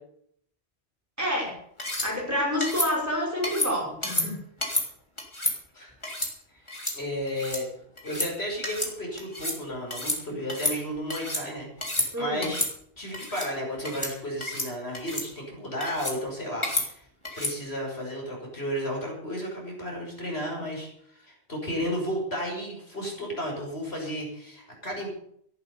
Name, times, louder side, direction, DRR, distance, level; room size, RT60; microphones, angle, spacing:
voice 1, 1.2-1.6 2.0-4.4 12.1-12.5, equal, 15° right, -2 dB, 5.4 m, -28 dB
sound 1, 1.8-2.1 2.6-2.9 3.4-3.7 4.0-4.3 4.6-4.9 5.2-5.5 6.0-6.3 6.7-7.0 7.3-7.6 8.0-8.3 8.6-8.9 9.2-9.6 9.9-10.2 10.5-11.4 11.8-12.1 12.4-12.7 13.1-13.5 13.8-14.1 14.4-14.7 14.9-15.3 15.8-16.2 16.6-16.9 17.2-17.5, left 1 dB, 25° left, 3.5 m, -30 dB
voice 2, 6.9-7.7 8.0-12.6 13.0-17.0 17.4-25.1, equal, 75° left, -1 dB, 6.1 m, -33 dB
14.0 x 11.5 x 7.0 m, 0.68 s
omnidirectional pair, 1.1 m